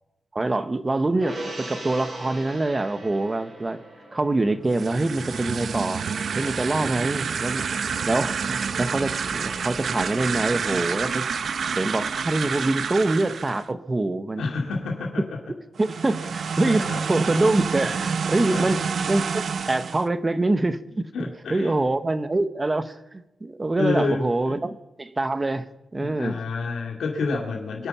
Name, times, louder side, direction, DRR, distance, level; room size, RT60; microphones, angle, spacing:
voice 1, 0.3-3.8 4.1-6.0 6.3-7.6 8.0-11.3 11.7-14.5 15.8-18.8 19.1-19.3 19.7-25.6 25.9-26.4, right 2 dB, 20° right, 12 dB, 0.9 m, -25 dB
Gong, 1.2-7.8 8.2-8.3, right 1 dB, 40° right, 6.2 m, -41 dB
sound 1, 4.7-13.7 15.8-20.1, right 6 dB, 60° right, 0.6 m, -28 dB
voice 2, 14.4-15.4 16.2-16.3 16.6-17.0 18.5-18.7 21.1-21.8 23.8-24.5 25.9-27.9, left 3 dB, 85° left, 0 dB, 2.7 m, -29 dB
24.0 x 8.9 x 5.6 m, 0.93 s
wide cardioid pair, 130°, 0 cm